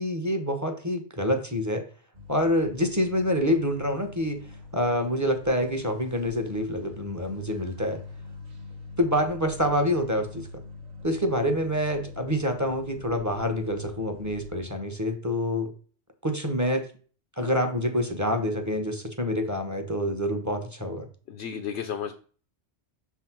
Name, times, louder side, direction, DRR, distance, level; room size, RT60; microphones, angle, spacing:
voice 1, 0.0-1.8 2.3-4.4 4.7-8.0 9.0-10.5 11.0-15.7 16.2-16.9 17.4-21.1, equal, 15° right, 5 dB, 0.9 m, -27 dB
sound 1, 2.1-14.7, left 3 dB, 40° right, 1.0 m, -44 dB
voice 2, 21.3-22.1, left 8 dB, 75° left, 6 dB, 1.0 m, -33 dB
6.4 x 3.6 x 5.9 m, 0.41 s
omnidirectional pair, 1.2 m